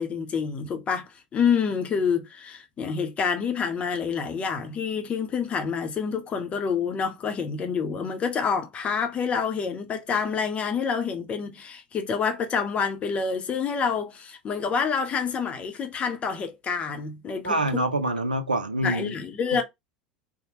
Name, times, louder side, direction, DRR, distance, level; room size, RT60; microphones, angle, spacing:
voice 1, 0.0-17.8 18.8-19.6, left 6 dB, 30° left, 0.6 m, -27 dB
voice 2, 17.4-19.2 19.5-19.6, right 1 dB, 85° right, 0.4 m, -26 dB
2.7 x 2.0 x 3.0 m
figure-of-eight pair, 75°, 4 cm